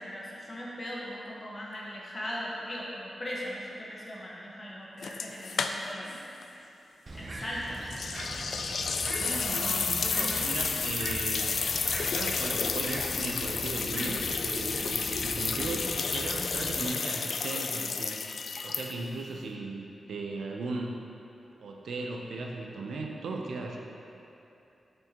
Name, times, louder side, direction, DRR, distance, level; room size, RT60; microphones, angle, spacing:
voice 1, 0.0-6.2 7.1-7.8 9.4-9.9 10.2-10.4, equal, 30° left, -5 dB, 1.3 m, -39 dB
sound 1, 5.0-6.2 6.4-6.5 7.9-19.2, left 5 dB, 70° left, 0.3 m, -31 dB
Bird, 7.1-16.9, right 2 dB, 45° right, 0.6 m, -41 dB
voice 2, 9.1-11.5 11.9-18.2 18.6-21.0 21.6-23.8, right 3 dB, 85° right, 1 dB, 0.6 m, -37 dB
6.6 x 6.4 x 3.0 m, 2.8 s
wide cardioid pair, 100°, 0 cm